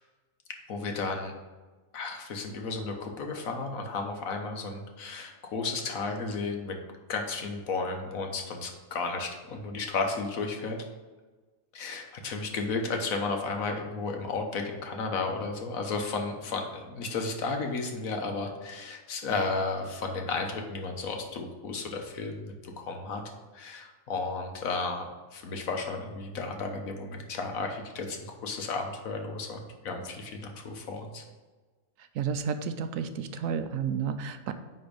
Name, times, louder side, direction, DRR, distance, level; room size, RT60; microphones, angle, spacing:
voice 1, 0.7-1.3 1.9-6.8 7.1-10.8 11.7-23.2 23.5-31.2, left 3 dB, 75° left, 3 dB, 1.4 m, -33 dB
voice 2, 32.2-34.5, right 7 dB, 75° right, 9 dB, 1.0 m, -31 dB
9.4 x 3.5 x 5.2 m, 1.3 s
omnidirectional pair, 1.5 m